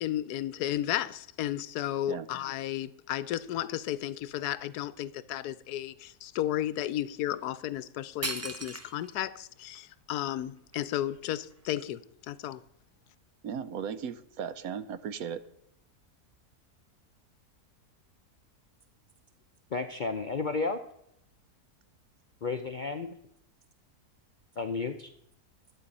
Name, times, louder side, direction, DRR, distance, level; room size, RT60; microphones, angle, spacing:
voice 1, 0.0-12.0 12.3-12.6, left 12 dB, 80° left, 1.1 m, -33 dB
sound 1, 8.2-9.2 9.8-9.9 10.4-11.8, right 2 dB, 25° right, 0.3 m, -38 dB
voice 2, 13.4-15.4, right 7 dB, 70° right, 1.2 m, -36 dB
voice 3, 19.7-20.8 22.4-23.1 24.6-25.1, left 4 dB, 55° left, 0.5 m, -32 dB
11.5 x 8.8 x 5.3 m
omnidirectional pair, 1.7 m